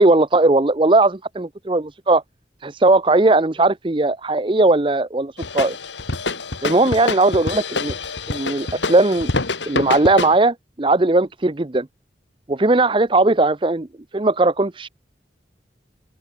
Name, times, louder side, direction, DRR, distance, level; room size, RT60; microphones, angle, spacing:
voice 1, 0.0-2.2 2.6-5.8 6.6-7.9 8.3-9.3 9.7-11.9 12.5-13.9 14.1-14.9, right 2 dB, 30° right, 0.6 m, -18 dB
sound 1, 5.4-10.4, left 3 dB, 90° left, 2.7 m, -26 dB
open air
head